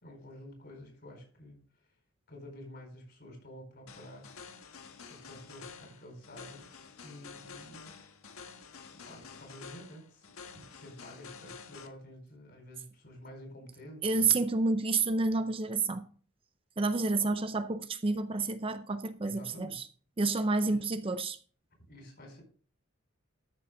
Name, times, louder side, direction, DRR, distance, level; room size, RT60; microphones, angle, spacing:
voice 1, 0.0-1.9 2.3-4.3 5.1-7.9 8.9-14.4 17.1-17.3 19.2-19.8 20.6-20.8 21.9-22.4, equal, 50° left, 4.7 m, -50 dB
sound 1, 3.9-11.9, left 5 dB, 90° left, 1.5 m, -49 dB
voice 2, 14.0-16.1 16.8-19.9 20.2-21.4, right 3 dB, 25° right, 0.5 m, -29 dB
13.0 x 7.0 x 3.8 m
head